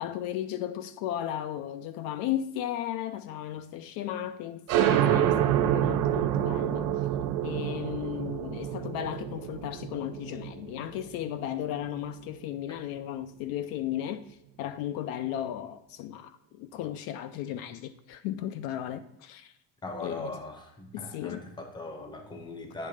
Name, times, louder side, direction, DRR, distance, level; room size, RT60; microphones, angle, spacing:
voice 1, 0.0-6.9 7.4-19.5 20.0-20.4 20.9-21.5, left 11 dB, 70° left, 0.5 m, -35 dB
sound 1, 4.7-12.0, right 11 dB, 60° right, 0.5 m, -27 dB
voice 2, 19.8-22.9, left 2 dB, 10° left, 0.7 m, -39 dB
8.7 x 3.1 x 4.9 m
cardioid pair, 175°, 38 cm